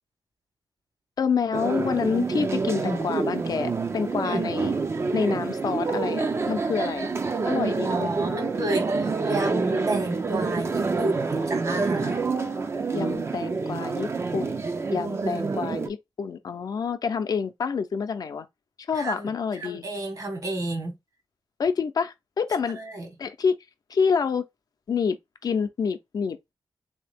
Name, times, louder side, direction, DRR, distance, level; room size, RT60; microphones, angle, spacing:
voice 1, 1.2-4.8 5.1-7.1 7.5-8.1 11.3-11.5 11.7-12.2 12.9-14.6 14.9-18.5 18.8-19.8 21.6-22.8 23.2-23.6 23.9-24.4 24.9-25.2 25.4-26.5, left 6 dB, 65° left, 0.6 m, -28 dB
sound 1, 1.5-15.9, right 4 dB, 40° right, 0.5 m, -27 dB
voice 2, 7.8-12.2 15.2-15.5 18.9-19.3 19.6-21.0 22.7-23.1, right 2 dB, 55° right, 1.5 m, -31 dB
3.6 x 2.8 x 3.4 m
wide cardioid pair, 100°, 7 cm